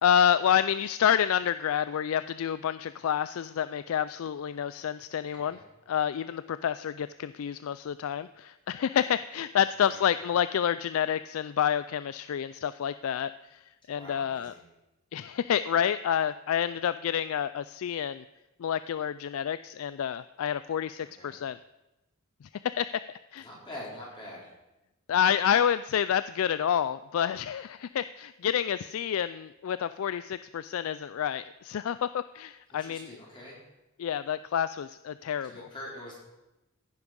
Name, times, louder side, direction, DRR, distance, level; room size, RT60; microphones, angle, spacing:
voice 1, 0.0-5.6 5.9-13.6 13.9-14.5 15.1-18.2 18.6-21.6 22.6-22.9 23.3-23.5 25.1-33.1 34.0-35.5, left 9 dB, 65° left, 14 dB, 0.3 m, -28 dB
voice 2, 5.2-5.6 9.8-10.1 13.9-14.7 21.0-21.4 23.4-24.5 32.7-33.6 35.4-36.2, left 1 dB, 25° left, -5 dB, 4.7 m, -45 dB
15.0 x 9.5 x 5.3 m, 0.98 s
head